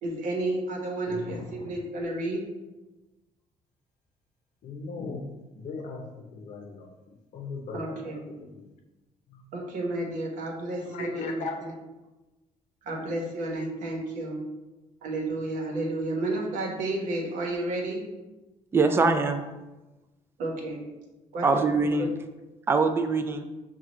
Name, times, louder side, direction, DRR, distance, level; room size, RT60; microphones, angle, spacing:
voice 1, 0.0-1.4 1.6-2.4 7.7-8.2 9.5-11.7 12.8-14.4 15.0-18.0 20.4-20.8 21.3-21.6 22.0-22.1, right 2 dB, 85° right, 0 dB, 1.0 m, -31 dB
voice 2, 1.1-1.7 4.6-5.2 5.5-6.9 7.3-8.6 9.3-9.4 10.8-11.7, left 4 dB, 70° left, 3 dB, 0.7 m, -38 dB
voice 3, 18.7-19.4 21.4-22.1 22.7-23.4, right 3 dB, 20° right, 6 dB, 0.3 m, -23 dB
5.9 x 2.4 x 3.0 m, 1.1 s
cardioid pair, 125°, 13 cm